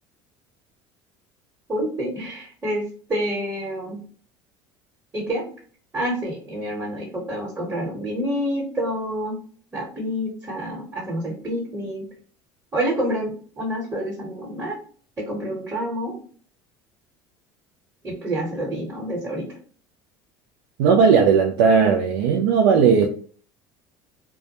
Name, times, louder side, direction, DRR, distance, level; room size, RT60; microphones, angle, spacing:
voice 1, 1.7-2.8 3.1-4.0 5.1-5.4 5.9-9.4 9.7-12.0 12.7-14.7 15.2-16.1 18.0-19.5, equal, 15° right, -3 dB, 1.0 m, -28 dB
voice 2, 20.8-23.1, right 6 dB, 85° right, 1 dB, 0.4 m, -16 dB
2.1 x 2.1 x 2.8 m, 0.43 s
supercardioid pair, 100°, 11 cm